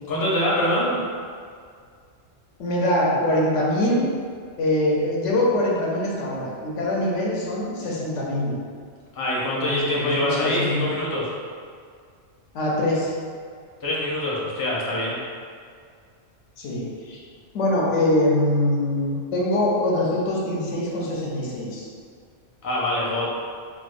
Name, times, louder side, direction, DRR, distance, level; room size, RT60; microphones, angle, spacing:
voice 1, 0.1-1.0 9.1-11.3 13.8-15.2 22.6-23.3, left 1 dB, 25° left, -6 dB, 0.5 m, -24 dB
voice 2, 2.6-4.0 4.6-8.5 9.5-10.8 12.5-13.1 16.6-17.2 17.5-21.9, left 1 dB, 85° left, -4 dB, 1.0 m, -23 dB
4.7 x 2.0 x 2.5 m, 2.1 s
omnidirectional pair, 1.2 m